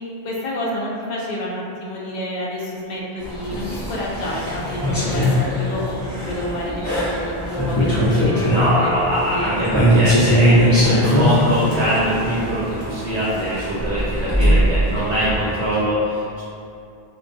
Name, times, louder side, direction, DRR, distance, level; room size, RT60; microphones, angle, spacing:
voice 1, 0.2-9.5, left 1 dB, 55° left, -4 dB, 0.5 m, -29 dB
sound 1, 3.2-15.8, equal, 20° left, 0.8 m, -21 dB
sound 2, 5.7-9.8 10.3-14.6, left 1 dB, 45° right, 0.7 m, -36 dB
voice 2, 8.5-16.4, right 1 dB, 85° right, -8 dB, 0.8 m, -22 dB
2.2 x 2.2 x 2.6 m, 2.5 s
omnidirectional pair, 1.1 m